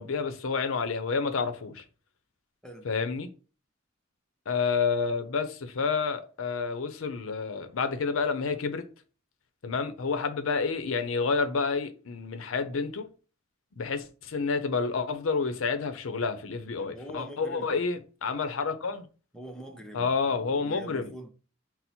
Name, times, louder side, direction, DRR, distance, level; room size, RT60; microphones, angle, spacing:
voice 1, 0.0-1.8 2.8-3.3 4.5-8.8 9.6-13.1 13.8-19.1 19.9-21.1, left 5 dB, 90° left, 0.6 m, -29 dB
voice 2, 16.8-17.8 19.3-21.3, right 1 dB, 5° left, 0.6 m, -44 dB
4.3 x 2.0 x 4.1 m
head